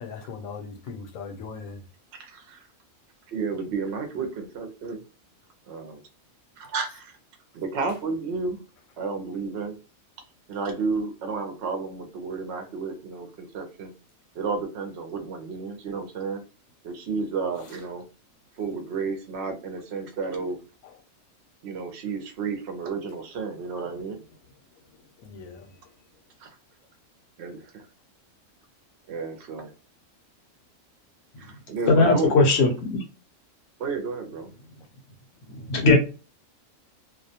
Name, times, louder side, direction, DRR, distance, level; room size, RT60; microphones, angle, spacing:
voice 1, 0.0-1.8 25.2-25.7, left 5 dB, 85° left, 1.0 m, -39 dB
voice 2, 2.1-2.7 3.3-5.0 5.7-6.0 6.6-7.2 7.5-8.6 9.0-9.8 10.5-13.9 14.3-16.4 16.8-18.0 18.6-20.6 21.6-24.2 26.4-26.5 27.4-27.9 29.1-29.7 31.4-32.3 33.8-34.5, right 4 dB, 65° right, 0.7 m, -32 dB
voice 3, 31.9-32.7 35.7-36.0, left 3 dB, 60° left, 0.8 m, -17 dB
2.3 x 2.1 x 2.7 m
omnidirectional pair, 1.4 m